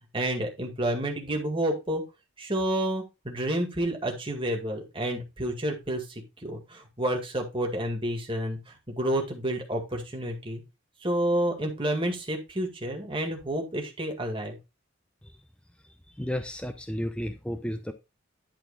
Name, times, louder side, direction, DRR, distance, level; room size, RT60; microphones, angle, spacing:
voice 1, 0.1-2.0 2.4-8.6 8.9-10.6 11.0-14.6, right 1 dB, 25° right, 2 dB, 2.1 m, -29 dB
voice 2, 16.2-17.9, equal, 5° left, 8 dB, 0.5 m, -32 dB
11.0 x 4.3 x 4.0 m, 0.25 s
head